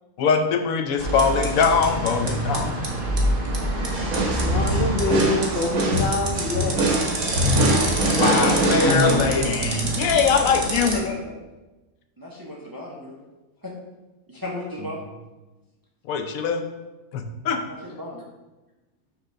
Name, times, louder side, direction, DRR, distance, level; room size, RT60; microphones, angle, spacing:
voice 1, 0.2-2.9 8.2-11.0 16.1-16.6 17.1-17.6, left 5 dB, 75° left, 6 dB, 1.0 m, -22 dB
sound 1, 1.0-11.0, right 2 dB, 40° right, 1.1 m, -27 dB
sound 2, 3.9-9.8, right 1 dB, 80° right, 1.6 m, -23 dB
voice 2, 4.4-6.7, left 3 dB, 55° left, 0 dB, 0.7 m, -25 dB
voice 3, 12.2-13.2 13.6-13.7 14.3-15.0 17.7-18.2, left 2 dB, 20° right, -3 dB, 0.7 m, -34 dB
5.7 x 3.4 x 5.4 m, 1.1 s
omnidirectional pair, 1.5 m